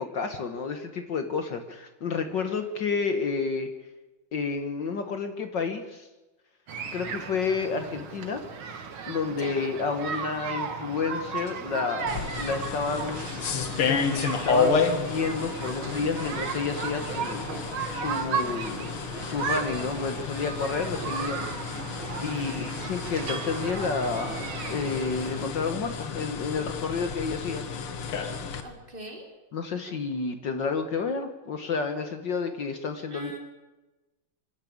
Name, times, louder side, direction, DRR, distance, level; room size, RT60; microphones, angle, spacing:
voice 1, 0.0-3.7 4.3-6.1 6.9-8.4 9.1-13.3 13.9-21.5 22.2-27.7 29.5-33.4, left 5 dB, 60° left, 7 dB, 1.9 m, -30 dB
sound 1, 6.7-25.5, right 6 dB, 70° right, 2.3 m, -35 dB
voice 2, 9.2-9.7 22.2-22.7 28.6-29.2 33.1-33.4, right 1 dB, 25° right, 1 dB, 3.6 m, -42 dB
sound 2, 12.1-28.6, left 5 dB, 85° left, 2.4 m, -31 dB
26.5 x 12.0 x 8.7 m, 1.1 s
omnidirectional pair, 2.4 m